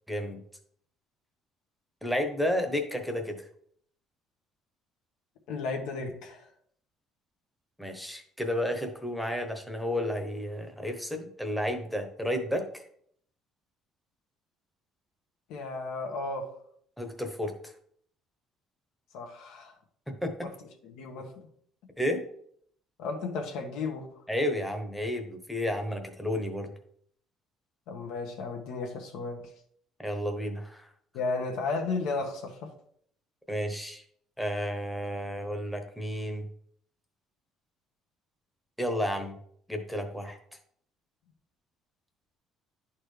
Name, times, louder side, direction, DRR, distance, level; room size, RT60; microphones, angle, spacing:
voice 1, 0.1-0.4 2.0-3.5 7.8-12.9 17.0-17.5 20.1-20.5 22.0-22.2 24.3-26.7 30.0-30.9 33.5-34.0 34.4-36.5 38.8-39.4 39.7-40.4, equal, ahead, 4 dB, 0.9 m, -32 dB
voice 2, 5.5-6.5 15.5-16.5 19.1-19.7 20.4-20.5 20.8-21.5 23.0-24.1 27.9-29.5 31.1-32.7, left 3 dB, 85° left, 2 dB, 1.4 m, -34 dB
10.5 x 4.3 x 3.3 m, 0.64 s
cardioid pair, 130°, 0 cm